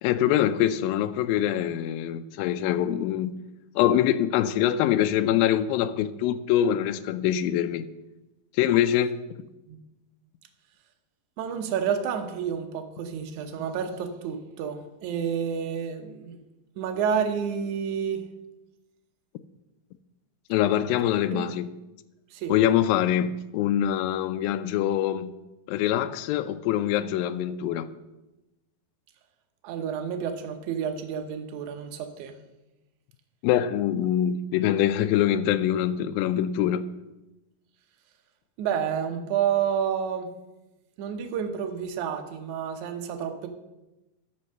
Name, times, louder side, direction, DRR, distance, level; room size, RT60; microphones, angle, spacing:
voice 1, 0.0-3.3 3.8-7.8 8.5-9.2 20.5-21.7 22.5-25.3 25.7-27.9 33.4-36.8, left 11 dB, 85° left, 2.3 m, -24 dB
voice 2, 11.4-16.4 16.8-18.3 21.3-21.5 22.3-22.5 29.6-32.4 38.6-40.3 41.0-43.5, right 7 dB, 70° right, 2.2 m, -29 dB
12.0 x 5.4 x 6.6 m
omnidirectional pair, 4.1 m